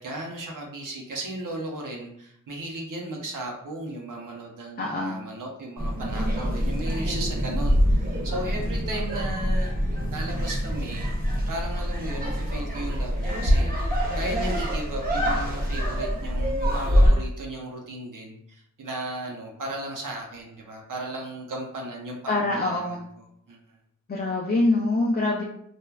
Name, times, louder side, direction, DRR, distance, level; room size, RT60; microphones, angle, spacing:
voice 1, 0.0-11.1 11.5-23.6, right 1 dB, 80° right, 0 dB, 0.6 m, -36 dB
voice 2, 4.8-5.2 22.3-23.0 24.1-25.4, left 2 dB, 30° left, -2 dB, 0.4 m, -24 dB
sound 1, 5.8-17.1, equal, 30° right, 0.7 m, -25 dB
3.2 x 2.1 x 2.3 m, 0.69 s
wide cardioid pair, 90°, 32 cm